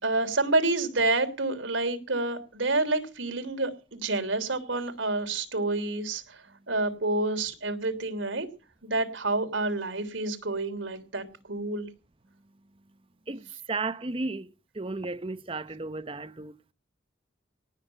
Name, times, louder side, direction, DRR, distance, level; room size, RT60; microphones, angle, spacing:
voice 1, 0.0-8.5 8.8-11.9, right 2 dB, 85° right, 3.2 m, -28 dB
voice 2, 13.3-16.6, right 3 dB, 30° right, 0.8 m, -34 dB
18.5 x 7.2 x 9.0 m
head